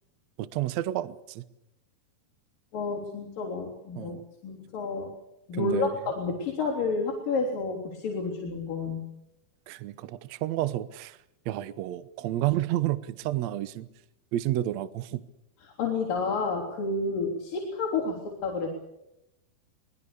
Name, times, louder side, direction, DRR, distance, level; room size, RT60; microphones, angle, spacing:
voice 1, 0.4-1.4 3.9-4.2 5.5-6.0 9.7-11.2 11.4-13.9 14.3-15.2, right 14 dB, 80° right, 15 dB, 1.5 m, -30 dB
voice 2, 2.7-4.2 4.4-5.1 5.5-9.0 15.8-18.7, left 3 dB, 60° left, -2 dB, 5.1 m, -30 dB
24.5 x 21.0 x 6.9 m, 0.86 s
omnidirectional pair, 4.5 m